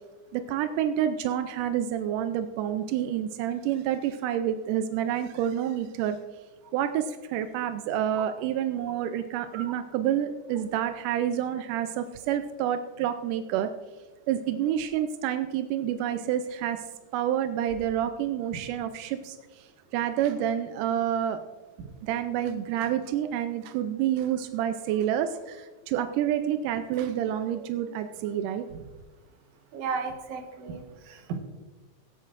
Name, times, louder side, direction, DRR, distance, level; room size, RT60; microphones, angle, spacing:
voice 1, 0.3-6.2 6.7-13.7 14.3-16.8 17.1-19.7 19.9-21.4 22.0-28.7, right 10 dB, 90° right, 8 dB, 2.2 m, -28 dB
voice 2, 29.7-31.4, right 5 dB, 70° right, 5 dB, 2.5 m, -34 dB
24.0 x 8.4 x 2.5 m, 1.2 s
omnidirectional pair, 3.6 m